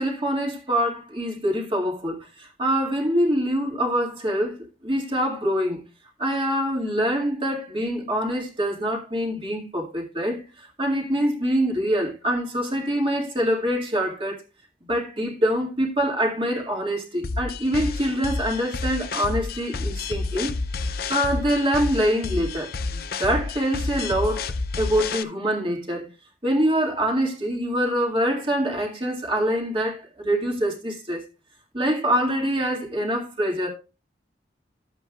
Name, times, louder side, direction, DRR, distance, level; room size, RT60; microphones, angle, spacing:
voice 1, 0.0-5.8 6.2-14.4 14.9-20.5 20.9-24.4 24.8-26.1 26.4-31.2 31.7-33.7, equal, 30° right, 2.1 m, -25 dB
sound 1, 17.2-25.2, left 3 dB, 55° left, 0.5 m, -30 dB
12.0 x 8.0 x 2.4 m
head